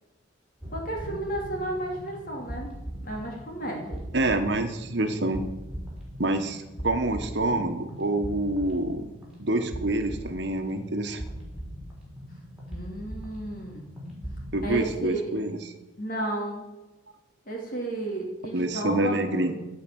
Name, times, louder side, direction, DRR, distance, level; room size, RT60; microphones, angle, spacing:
sound 1, 0.6-14.8, equal, 5° right, 3.9 m, -40 dB
voice 1, 0.7-2.7 3.0-4.0 12.7-13.9 14.6-15.3 16.0-16.7 17.5-19.5, right 1 dB, 45° left, 0 dB, 2.8 m, -33 dB
voice 2, 4.1-5.4 6.2-9.1 9.4-11.2 14.5-15.6 18.5-19.5, right 2 dB, 55° right, 7 dB, 1.3 m, -27 dB
15.5 x 5.1 x 8.6 m, 1.0 s
head